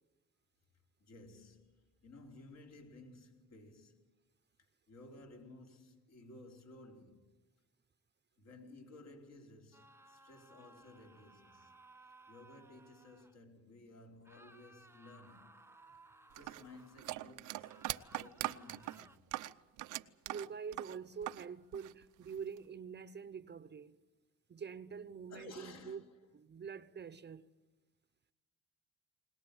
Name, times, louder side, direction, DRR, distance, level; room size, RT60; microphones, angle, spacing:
voice 1, 1.0-4.0 4.9-7.4 8.4-11.7 12.3-15.6 16.3-19.2 25.3-26.2, left 2 dB, 60° left, 4.3 m, -56 dB
sound 1, 9.7-13.4 14.2-17.2 17.6-19.2, right 2 dB, 10° right, 1.0 m, -61 dB
sound 2, 16.4-21.5 21.7-22.6, right 16 dB, 90° right, 0.8 m, -41 dB
voice 2, 20.3-24.0 24.5-26.0 26.3-27.5, right 6 dB, 35° right, 0.8 m, -46 dB
21.5 x 20.0 x 9.0 m
cardioid pair, 90°, 30 cm